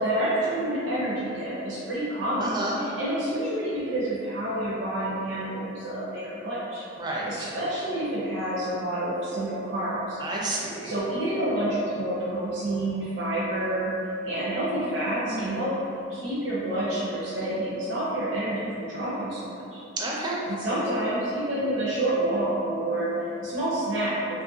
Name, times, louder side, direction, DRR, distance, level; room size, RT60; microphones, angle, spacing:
voice 1, 0.0-6.8 7.3-10.2 10.8-13.9 14.2-15.7 16.1-19.8 20.5-24.4, right 1 dB, 65° right, -9 dB, 0.6 m, -28 dB
voice 2, 2.4-2.8 7.0-7.3 10.2-10.9 15.3-15.4 20.0-20.4, right 2 dB, 20° right, -4 dB, 0.4 m, -30 dB
3.1 x 2.4 x 2.6 m, 2.7 s
head